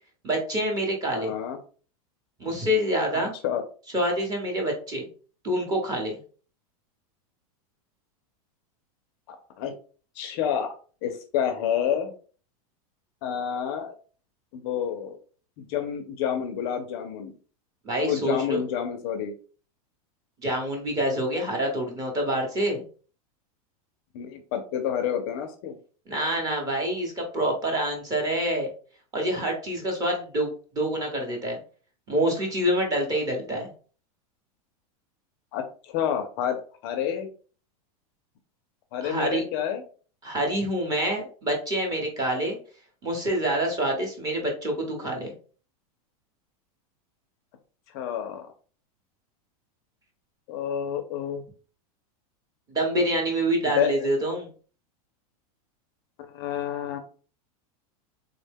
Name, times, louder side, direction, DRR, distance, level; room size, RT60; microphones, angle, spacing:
voice 1, 0.2-1.3 2.4-3.3 3.9-5.1 5.4-6.2 17.8-18.6 20.4-22.8 26.1-28.7 29.1-31.6 32.1-33.7 39.0-39.4 40.2-42.6 43.0-45.3 52.7-54.5, right 1 dB, 20° right, 1 dB, 0.9 m, -26 dB
voice 2, 1.1-1.6 3.4-3.6 9.3-9.7 10.2-10.7 11.0-12.1 13.2-14.0 14.5-15.2 15.6-17.3 18.0-19.4 24.1-25.8 35.5-37.3 38.9-39.8 47.9-48.5 50.5-51.4 53.6-54.1 56.2-57.0, left 9 dB, 40° left, 6 dB, 0.4 m, -29 dB
3.5 x 2.1 x 3.4 m, 0.39 s
supercardioid pair, 160°, 19 cm